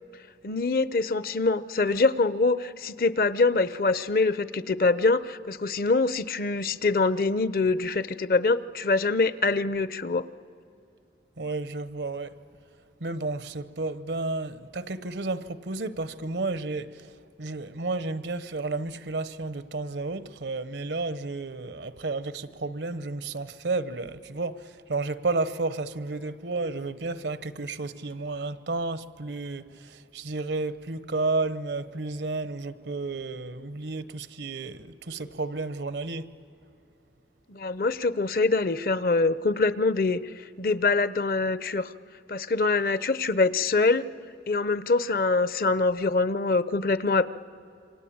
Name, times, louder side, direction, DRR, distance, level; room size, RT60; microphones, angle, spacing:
voice 1, 0.4-10.2 37.5-41.9 42.3-44.0 44.5-47.3, left 3 dB, 55° left, 0.7 m, -24 dB
voice 2, 11.4-12.4 13.0-36.3, right 3 dB, 80° right, 0.9 m, -32 dB
27.5 x 25.0 x 8.7 m
head